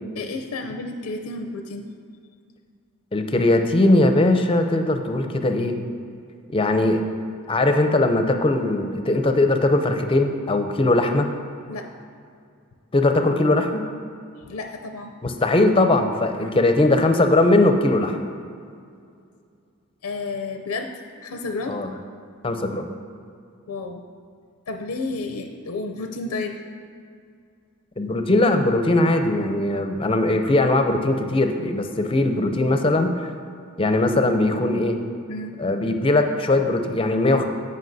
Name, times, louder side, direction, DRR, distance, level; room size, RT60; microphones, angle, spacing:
voice 1, 0.2-1.9 11.7-11.9 14.5-15.1 16.4-16.6 20.0-20.9 21.2-21.8 23.7-24.0 24.7-26.6 35.3-35.5, left 3 dB, 85° left, 5 dB, 0.5 m, -31 dB
voice 2, 3.1-5.7 6.5-7.0 7.5-11.3 12.9-13.8 15.2-18.2 21.7-21.9 22.4-22.9 28.0-33.3 33.8-35.0 35.6-37.4, left 2 dB, 25° left, 6 dB, 0.5 m, -20 dB
15.0 x 5.4 x 2.7 m, 2.3 s
head